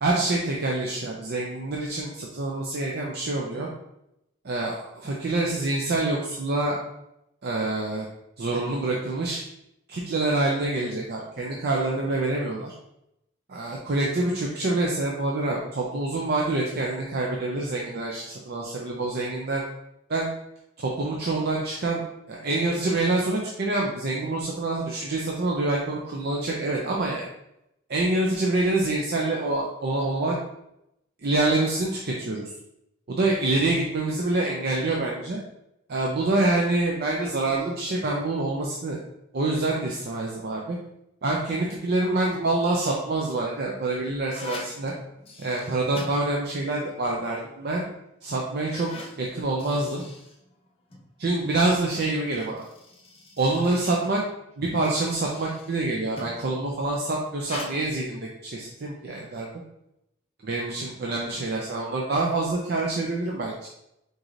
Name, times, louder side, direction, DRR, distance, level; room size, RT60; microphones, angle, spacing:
voice 1, 0.0-3.7 4.4-6.8 7.4-8.1 8.4-9.4 9.9-12.7 13.5-19.6 20.1-20.3 20.8-27.2 27.9-30.4 31.2-32.4 33.1-35.4 35.9-39.0 39.3-40.8 41.2-44.9 45.4-47.8 48.2-48.9 49.2-50.0 51.2-52.6 53.4-54.2 54.6-59.5 60.4-63.7, right 2 dB, 50° right, -2 dB, 0.5 m, -26 dB
sound 1, 42.1-42.7 43.4-46.8 47.1-47.2 47.9-48.0 48.5-51.1 52.3-56.5 57.4-57.7, left 2 dB, 30° left, 0.6 m, -43 dB
4.7 x 3.9 x 2.5 m, 0.83 s
head